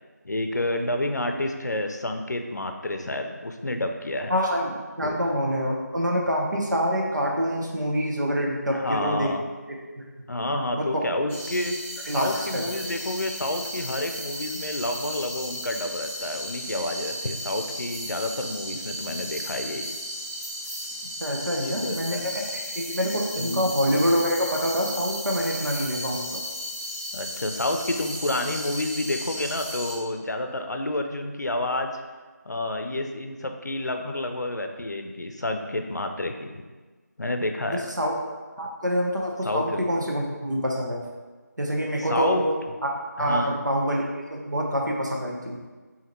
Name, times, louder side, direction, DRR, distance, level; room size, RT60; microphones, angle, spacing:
voice 1, 0.2-4.3 5.0-5.2 8.7-9.4 10.3-11.8 12.1-19.9 21.5-22.3 23.4-23.7 27.1-32.0 32.4-36.6 37.2-37.9 39.4-39.8 42.0-42.4 43.2-43.6, left 1 dB, 75° left, 5 dB, 0.5 m, -29 dB
voice 2, 4.3-9.3 9.7-10.0 10.8-11.0 12.1-12.7 21.2-26.4 37.7-38.1 38.6-41.0 41.6-42.5 42.8-42.9 43.2-45.6, equal, 90° right, -2 dB, 1.0 m, -26 dB
sound 1, 11.3-29.9, equal, 10° left, 1.0 m, -35 dB
4.9 x 2.8 x 3.0 m, 1.3 s
figure-of-eight pair, 175°, 10 cm